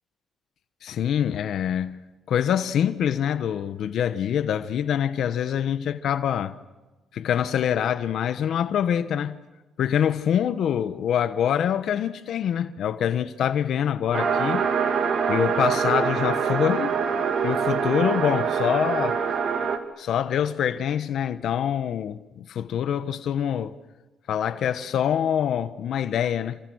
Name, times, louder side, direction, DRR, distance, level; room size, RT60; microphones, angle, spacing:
voice 1, 0.8-2.0 2.3-6.5 7.1-9.4 9.8-14.6 15.3-17.0 17.4-19.2 20.0-23.7 24.3-26.6, left 9 dB, 70° left, 1.1 m, -25 dB
sound 1, 14.1-19.8, right 6 dB, 65° right, 2.8 m, -24 dB
28.5 x 26.5 x 6.4 m
cardioid pair, 90°, 0 cm